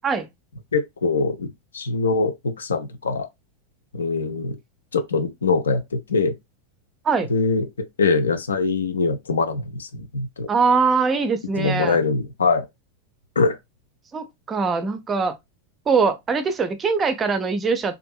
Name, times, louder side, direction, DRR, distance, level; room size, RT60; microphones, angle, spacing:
voice 1, 0.7-3.3 3.9-4.6 4.9-6.3 7.3-10.5 11.5-12.7 13.4-13.6, left 4 dB, 70° left, 0.4 m, -23 dB
voice 2, 10.5-12.0 14.1-15.3 15.9-18.0, right 5 dB, 20° right, 0.4 m, -22 dB
2.6 x 2.4 x 2.3 m
figure-of-eight pair, 90°, 0 cm